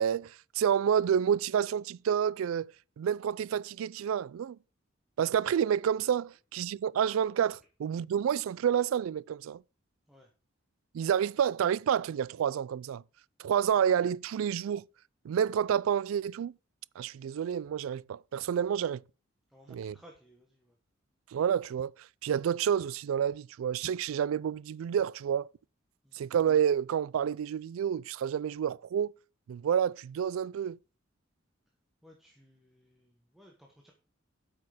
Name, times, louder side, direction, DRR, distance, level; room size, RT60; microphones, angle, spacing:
voice 1, 0.0-2.7 3.0-4.6 5.2-9.6 10.9-13.0 13.4-14.8 15.2-16.5 17.0-19.0 19.7-20.0 21.3-21.9 22.2-25.5 26.1-29.1 29.5-30.8, right 8 dB, 85° right, 0.3 m, -29 dB
voice 2, 19.5-20.8 26.0-26.2 32.0-33.9, equal, ahead, 1.1 m, -58 dB
8.5 x 6.4 x 4.9 m
head